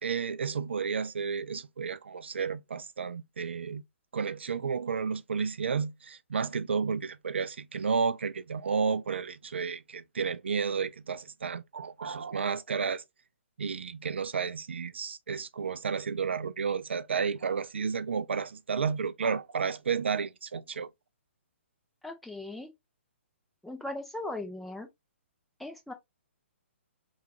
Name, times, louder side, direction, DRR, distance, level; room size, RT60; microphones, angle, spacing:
voice 1, 0.0-3.8 4.1-13.0 13.6-20.9, right 5 dB, 60° right, 0.4 m, -32 dB
voice 2, 22.0-22.7 23.6-24.9 25.6-25.9, left 2 dB, ahead, 0.5 m, -38 dB
5.6 x 2.4 x 2.7 m
figure-of-eight pair, 125°, 7 cm